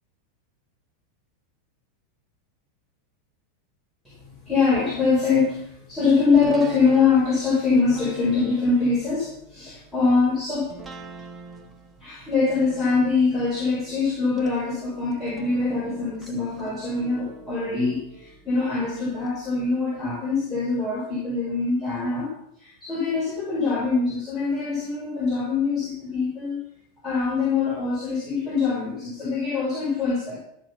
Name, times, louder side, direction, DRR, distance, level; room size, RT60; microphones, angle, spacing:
voice 1, 4.5-10.7 12.0-26.6 27.0-30.4, left 4 dB, 10° left, -6 dB, 5.3 m, -23 dB
sound 1, 6.3-19.3 19.7-19.8, right 2 dB, 10° right, 2.4 m, -44 dB
14.0 x 7.3 x 6.9 m, 0.74 s
figure-of-eight pair, 90°, 0 cm